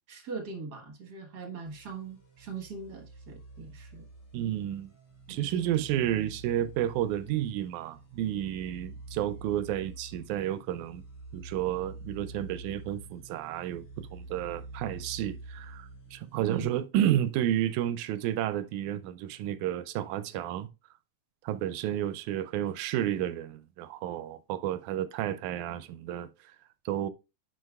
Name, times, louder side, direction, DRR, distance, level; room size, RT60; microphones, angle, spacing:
voice 1, 0.1-4.1 5.3-5.8 16.4-16.7, right 5 dB, 45° right, 1.5 m, -41 dB
sound 1, 1.6-16.7, right 2 dB, 50° left, 4.0 m, -47 dB
voice 2, 4.3-4.9 5.3-11.0 11.3-20.7 21.4-26.3 26.9-27.1, right 12 dB, 85° right, 2.0 m, -31 dB
11.0 x 5.1 x 2.3 m
omnidirectional pair, 3.4 m